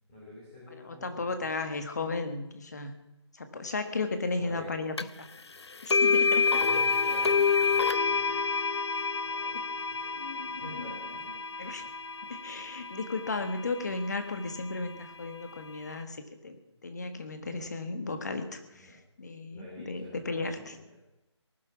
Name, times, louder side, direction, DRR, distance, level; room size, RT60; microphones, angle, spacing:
voice 1, 0.1-1.5 4.4-4.7 6.4-8.5 9.2-10.1 10.6-11.3 11.8-12.2 17.4-17.7 18.7-19.0 19.5-20.8, left 1 dB, 10° left, -7 dB, 3.2 m, -47 dB
voice 2, 0.8-2.9 3.3-5.3 5.8-6.6 9.5-9.6 10.2-10.9 11.6-11.9 12.3-20.8, left 3 dB, 35° left, 8 dB, 1.6 m, -35 dB
sound 1, 5.0-5.1 5.9-13.9, left 5 dB, 65° left, 0.8 m, -28 dB
19.0 x 11.5 x 5.9 m, 0.95 s
figure-of-eight pair, 175°, 15 cm